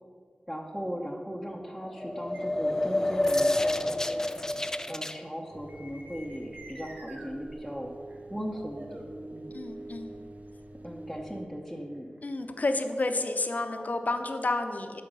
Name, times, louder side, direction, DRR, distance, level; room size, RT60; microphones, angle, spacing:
voice 1, 0.5-4.3 4.9-7.9 8.3-9.0 9.3-9.6 10.8-12.1, equal, 5° right, -1 dB, 0.9 m, -38 dB
sound 1, 1.8-5.2, left 1 dB, 20° left, 0.4 m, -28 dB
sound 2, 2.3-2.4 3.1-3.7 5.7-7.3 8.1-8.2 8.5-9.9 11.1-12.4, right 1 dB, 80° right, 1.2 m, -49 dB
sound 3, 5.5-11.5, right 1 dB, 55° right, 0.5 m, -45 dB
voice 2, 9.5-10.2 12.2-15.0, left 2 dB, 60° left, 7 dB, 0.7 m, -30 dB
12.0 x 5.0 x 5.5 m, 2.1 s
wide cardioid pair, 60°, 3 cm